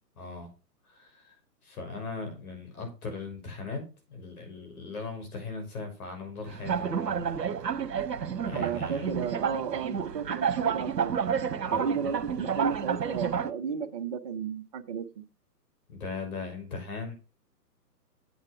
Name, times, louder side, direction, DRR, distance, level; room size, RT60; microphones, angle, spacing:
voice 1, 0.2-0.5 0.9-1.4 1.6-7.4 7.7-8.0 8.4-9.2 11.7-11.8 15.9-17.1, left 4 dB, 60° left, 6.1 m, -39 dB
sound 1, 6.5-13.5, right 7 dB, 80° right, 1.3 m, -30 dB
voice 2, 8.5-11.1 11.7-15.2, right 6 dB, 25° right, 0.6 m, -33 dB
8.8 x 8.4 x 4.5 m
hypercardioid pair, 145°, 49 cm